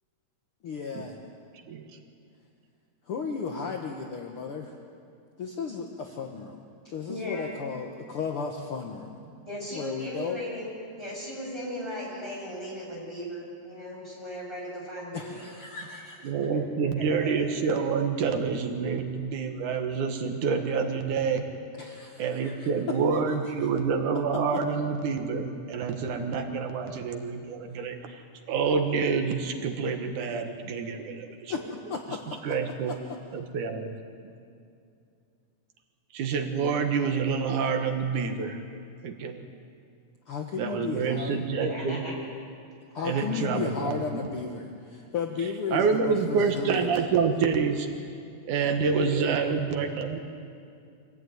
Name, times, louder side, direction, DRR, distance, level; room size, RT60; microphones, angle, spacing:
voice 1, 0.6-1.1 3.1-4.7 5.4-6.6 6.9-9.2 9.7-10.4 15.1-16.3 21.8-22.7 23.3-23.7 31.5-32.4 40.3-41.4 42.9-46.9, left 5 dB, 55° left, 2 dB, 1.9 m, -34 dB
voice 2, 7.1-7.5 9.5-10.7 11.0-15.5 16.3-16.6 17.0-17.4 41.1-41.2 41.6-42.2 43.0-43.2, equal, 10° left, -4 dB, 7.4 m, -37 dB
voice 3, 16.2-21.4 22.2-28.2 28.5-31.5 32.4-32.9 33.3-33.9 36.1-38.6 39.0-39.4 40.6-42.0 43.0-44.3 45.7-47.9 48.4-50.2, right 5 dB, 80° right, 5 dB, 3.0 m, -27 dB
25.5 x 16.0 x 9.4 m, 2.5 s
omnidirectional pair, 3.5 m